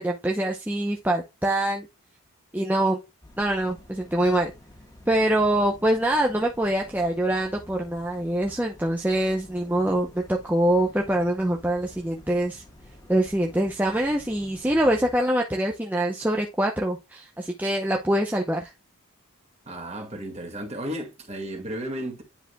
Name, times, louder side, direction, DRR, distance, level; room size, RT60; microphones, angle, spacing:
voice 1, 0.0-1.9 2.5-3.0 3.4-4.5 5.1-12.6 13.1-18.7, right 1 dB, 10° right, 0.7 m, -24 dB
sound 1, 3.2-15.2, left 1 dB, 15° left, 1.5 m, -49 dB
voice 2, 19.7-22.2, right 1 dB, 30° right, 2.0 m, -34 dB
10.0 x 4.9 x 2.3 m
head